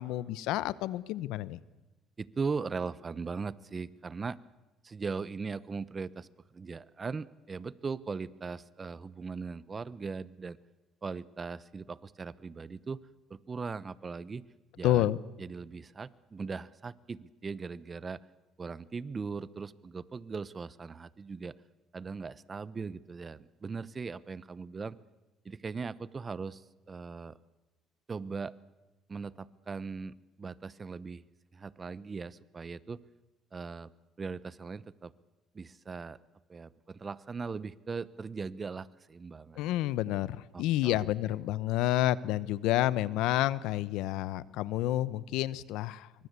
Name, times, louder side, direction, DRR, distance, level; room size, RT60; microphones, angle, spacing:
voice 1, 0.0-1.6 14.8-15.2 39.6-46.3, left 14 dB, 85° left, 19 dB, 0.8 m, -29 dB
voice 2, 2.2-4.4 4.8-6.3 6.5-10.6 11.0-13.0 13.3-14.4 14.8-15.1 15.4-18.2 18.6-21.5 21.9-25.0 25.4-27.3 28.1-28.5 29.1-31.2 31.5-33.0 33.5-33.9 34.2-35.1 35.5-36.2 36.5-39.7 40.5-41.0, right 5 dB, 30° right, 18 dB, 1.0 m, -39 dB
26.0 x 24.0 x 8.3 m, 1.1 s
cardioid pair, 100°, 0 cm